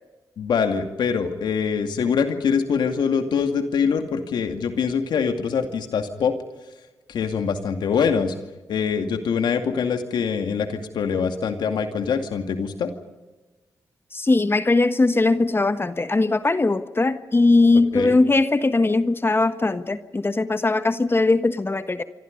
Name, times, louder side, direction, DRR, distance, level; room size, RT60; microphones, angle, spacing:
voice 1, 0.4-6.3 7.1-8.3 8.7-12.9 17.9-18.2, left 6 dB, 80° left, 6 dB, 2.3 m, -24 dB
voice 2, 14.1-22.0, left 3 dB, 30° left, 11 dB, 1.4 m, -20 dB
28.0 x 25.0 x 5.3 m, 1.2 s
cardioid pair, 50°, 7 cm